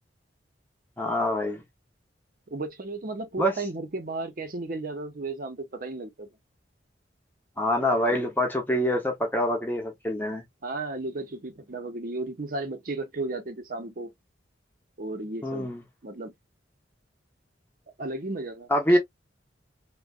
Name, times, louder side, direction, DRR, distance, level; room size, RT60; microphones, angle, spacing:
voice 1, 1.0-1.6 3.4-3.5 7.6-10.4 15.4-15.8 18.7-19.0, left 1 dB, 10° left, 0.7 m, -25 dB
voice 2, 2.5-6.3 7.8-8.3 10.6-14.1 15.0-15.7 16.0-16.3 18.0-19.0, right 2 dB, 50° right, 0.6 m, -34 dB
2.5 x 2.2 x 2.4 m
head